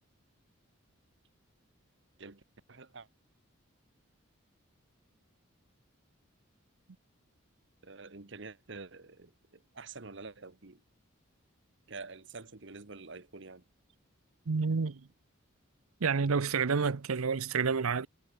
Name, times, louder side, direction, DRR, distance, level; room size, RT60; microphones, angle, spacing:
voice 1, 2.7-3.1 7.8-10.8 11.9-13.6, right 4 dB, 55° right, 1.2 m, -47 dB
voice 2, 14.5-15.1 16.0-18.1, right 5 dB, 90° right, 0.7 m, -29 dB
head